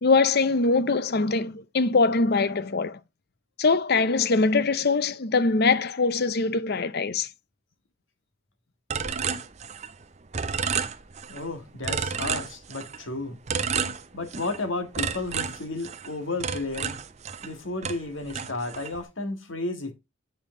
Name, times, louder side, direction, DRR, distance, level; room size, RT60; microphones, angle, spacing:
voice 1, 0.0-3.0 3.6-7.3, left 4 dB, 50° left, 0.6 m, -22 dB
sound 1, 8.9-10.0 10.3-11.4 11.8-13.0 13.5-14.6 14.9-17.5 17.8-19.0, right 6 dB, 35° right, 0.6 m, -31 dB
voice 2, 11.3-13.4 14.1-17.0 17.4-19.9, left 2 dB, 70° left, 1.7 m, -33 dB
8.6 x 5.4 x 3.7 m
head